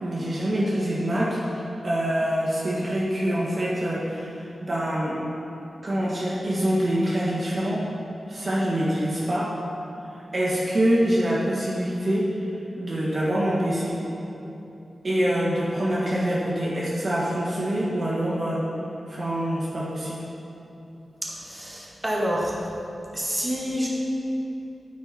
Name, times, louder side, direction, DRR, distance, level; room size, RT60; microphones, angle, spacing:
voice 1, 0.0-5.2 5.8-7.9 8.3-9.5 10.3-12.3 12.8-14.0 15.0-18.6 19.1-20.3, equal, 40° right, -6 dB, 1.6 m, -25 dB
voice 2, 21.2-22.6 23.1-23.9, equal, 15° right, -5 dB, 1.9 m, -28 dB
10.5 x 9.6 x 4.4 m, 3.0 s
wide cardioid pair, 130°, 0 cm